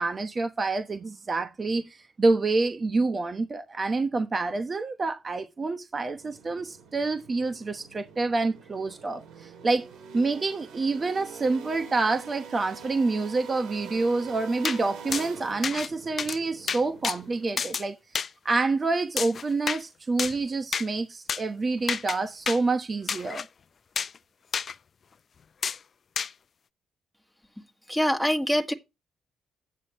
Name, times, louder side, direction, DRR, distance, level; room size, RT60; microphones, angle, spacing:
voice 1, 0.0-9.9 10.1-18.0 18.4-23.4, right 3 dB, 30° right, 1.0 m, -27 dB
sound 1, 6.0-17.8, right 6 dB, 85° right, 2.1 m, -45 dB
sound 2, 14.6-14.8 15.1-15.3 15.6-15.9 16.2-16.4 16.7-17.2 17.6-17.8 18.2-18.3 19.2-19.8 20.2-20.4 20.7-20.9 21.3-21.4 21.9-22.2 22.5-22.6 23.1-23.5 24.0-24.2 24.5-24.7 25.6-25.8 26.2-26.3, left 6 dB, 45° left, 0.4 m, -29 dB
voice 2, 27.9-28.7, equal, ahead, 1.8 m, -24 dB
11.5 x 8.9 x 3.0 m
cardioid pair, 90°, 0 cm